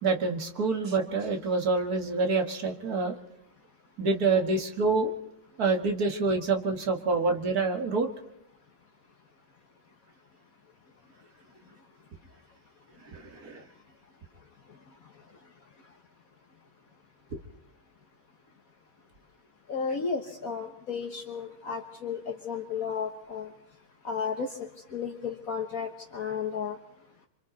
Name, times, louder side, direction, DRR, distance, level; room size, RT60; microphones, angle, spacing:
voice 1, 0.0-3.2 4.0-5.1 5.6-8.1 13.1-13.6 17.3-17.4, right 3 dB, 65° right, 4 dB, 2.2 m, -27 dB
voice 2, 19.7-23.5 24.0-26.8, left 6 dB, 60° left, 3 dB, 1.7 m, -33 dB
27.0 x 25.0 x 4.1 m, 0.78 s
omnidirectional pair, 1.8 m